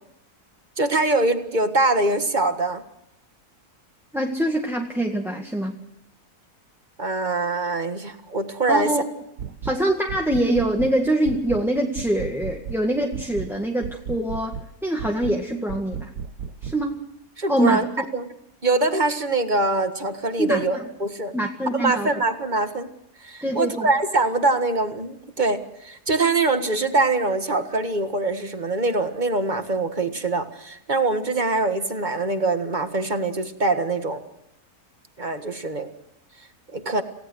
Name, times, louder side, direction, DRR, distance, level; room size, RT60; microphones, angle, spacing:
voice 1, 0.8-2.8 7.0-8.9 17.4-17.9 18.1-18.3 18.6-21.3 21.7-22.9 23.2-34.2 35.2-35.9 36.7-37.0, right 2 dB, 30° right, 7 dB, 1.8 m, -23 dB
voice 2, 4.1-5.8 8.7-9.0 9.6-16.1 16.6-17.0 17.5-17.8 20.4-20.8 21.3-22.1 23.4-23.9, right 1 dB, ahead, 1 dB, 1.8 m, -24 dB
sound 1, 9.4-9.8 10.1-11.0 11.3-11.7 12.0-12.8 13.1-13.5 13.8-14.7 15.0-15.4 15.7-16.8, right 7 dB, 90° right, 1.7 m, -34 dB
28.0 x 17.0 x 6.4 m, 0.80 s
omnidirectional pair, 1.7 m